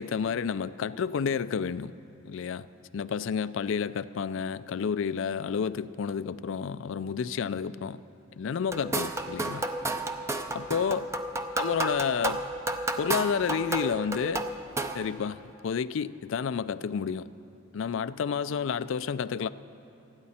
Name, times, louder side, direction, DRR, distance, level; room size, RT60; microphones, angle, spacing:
voice 1, 0.0-1.9 2.2-2.6 2.9-8.0 8.4-9.7 10.5-11.1 11.6-12.4 13.0-14.4 14.9-17.3 17.7-19.5, left 6 dB, 65° left, 16 dB, 0.3 m, -30 dB
sound 1, 8.7-15.1, right 2 dB, 15° right, 0.5 m, -32 dB
28.0 x 9.6 x 4.3 m, 2.8 s
head